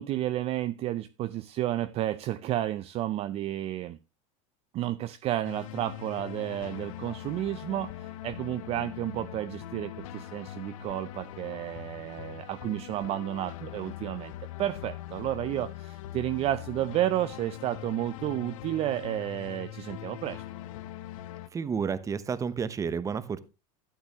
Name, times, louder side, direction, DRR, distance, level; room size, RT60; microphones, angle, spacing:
voice 1, 0.0-4.0 4.7-14.3 14.6-20.4, right 13 dB, 35° right, 0.5 m, -31 dB
sound 1, 5.4-21.5, left 12 dB, 80° left, 0.7 m, -42 dB
voice 2, 21.5-23.4, right 6 dB, 20° right, 0.9 m, -31 dB
12.5 x 8.0 x 3.0 m
supercardioid pair, 130°, 17 cm